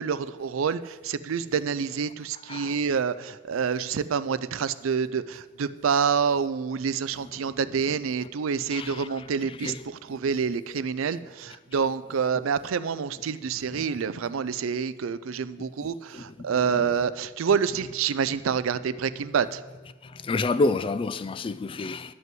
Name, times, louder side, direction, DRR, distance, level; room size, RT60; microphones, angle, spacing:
voice 1, 0.0-19.6, right 6 dB, 80° right, 0.4 m, -27 dB
voice 2, 8.7-9.8 10.1-10.2 13.7-13.8 15.8-16.2 16.7-16.9 20.0-22.1, left 3 dB, 25° left, 0.3 m, -30 dB
10.5 x 5.5 x 7.7 m
head